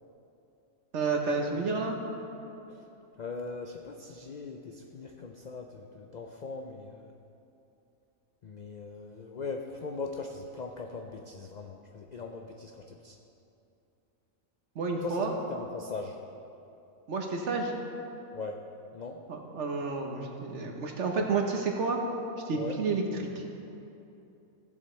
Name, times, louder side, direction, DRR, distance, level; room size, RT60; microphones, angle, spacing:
voice 1, 0.9-2.0 14.7-15.3 17.1-17.7 19.3-22.0 22.5-23.0 23.3-23.4, right 4 dB, 60° right, 2 dB, 1.3 m, -30 dB
voice 2, 3.2-7.1 8.4-13.2 15.0-15.2 15.5-16.2 18.3-18.6 18.9-19.2 22.5-22.8, left 3 dB, 75° left, 3 dB, 0.4 m, -40 dB
15.5 x 7.8 x 3.2 m, 2.8 s
omnidirectional pair, 1.4 m